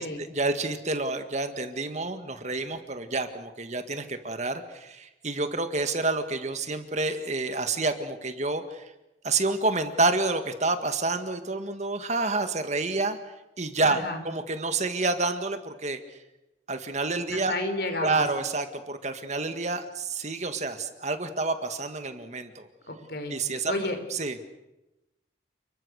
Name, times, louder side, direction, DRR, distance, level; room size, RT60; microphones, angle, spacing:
voice 1, 0.3-8.9 9.2-13.2 13.6-16.2 16.7-17.5 18.0-22.7 23.3-23.7 24.1-24.4, right 3 dB, 40° right, 8 dB, 1.9 m, -28 dB
voice 2, 13.9-14.2 17.3-18.2 22.9-23.4 23.7-24.0, left 2 dB, 60° left, 7 dB, 4.5 m, -31 dB
30.0 x 22.0 x 6.6 m, 0.95 s
head